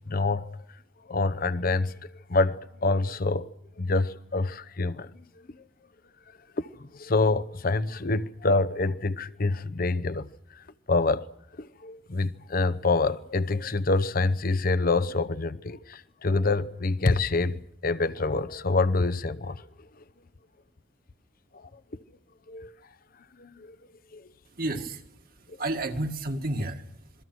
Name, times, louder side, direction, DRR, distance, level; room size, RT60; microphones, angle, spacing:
voice 1, 0.1-0.6 1.1-2.0 2.3-3.5 3.8-5.2 6.6-10.3 10.5-11.3 11.6-19.7 21.5-22.0 22.5-22.7 23.4-23.8 24.1-24.3, left 3 dB, 50° left, 0.8 m, -26 dB
voice 2, 24.5-27.2, right 2 dB, 50° right, 1.9 m, -32 dB
27.0 x 22.0 x 6.2 m
head